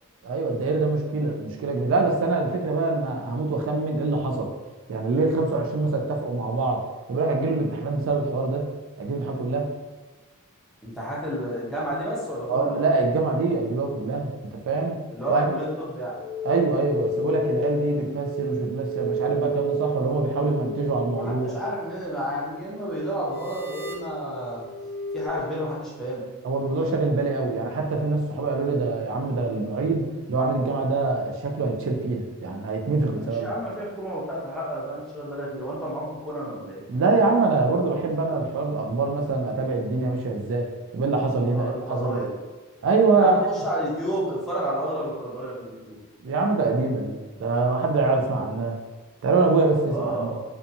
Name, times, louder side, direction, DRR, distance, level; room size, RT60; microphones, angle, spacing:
voice 1, 0.2-4.5 4.9-6.8 7.1-8.7 9.0-9.7 12.5-14.3 14.7-15.0 15.3-15.5 16.4-21.5 26.4-33.5 36.9-40.7 40.9-42.2 42.8-43.6 46.2-48.8 49.2-50.3, right 3 dB, 60° right, 1 dB, 0.3 m, -24 dB
voice 2, 10.8-12.8 15.1-16.2 21.2-24.6 25.1-26.2 33.2-36.8 41.5-42.3 43.2-46.0 49.9-50.4, right 1 dB, ahead, -7 dB, 0.7 m, -31 dB
sound 1, 16.1-25.3, equal, 50° left, 0.6 m, -31 dB
2.6 x 2.2 x 2.6 m, 1.3 s
head